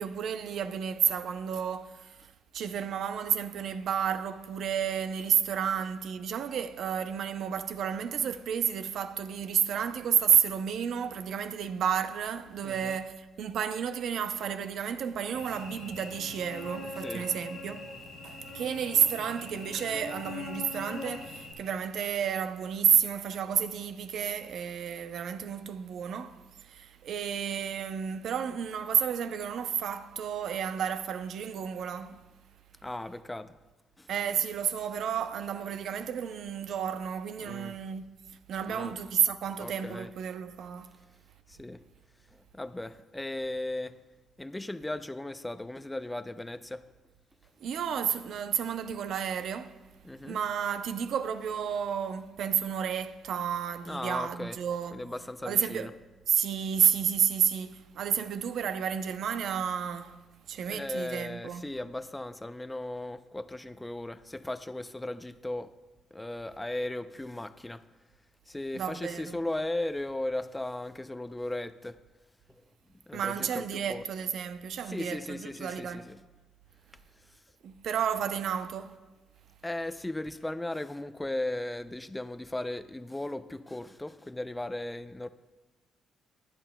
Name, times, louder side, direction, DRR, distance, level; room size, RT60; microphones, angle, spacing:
voice 1, 0.0-17.9 18.2-32.2 34.1-38.1 38.5-41.0 47.6-49.8 50.2-55.0 55.4-55.9 56.3-60.2 60.5-61.7 68.7-69.4 73.1-76.1 77.6-78.9, right 8 dB, 70° right, 0.6 m, -31 dB
voice 2, 12.6-13.0 17.0-17.3 32.8-33.5 34.0-34.1 37.4-37.7 38.7-39.0 39.6-40.1 41.5-41.8 42.3-44.0 44.4-46.8 50.0-50.4 53.9-54.6 54.9-55.9 60.7-65.7 66.1-67.8 68.5-72.0 72.5-72.6 73.1-73.6 73.9-74.0 74.9-76.2 79.6-85.3, left 1 dB, 10° left, 0.5 m, -37 dB
Cricket / Buzz, 15.3-21.5, left 3 dB, 85° left, 2.2 m, -42 dB
19.5 x 8.6 x 2.2 m
cardioid pair, 90°, 0 cm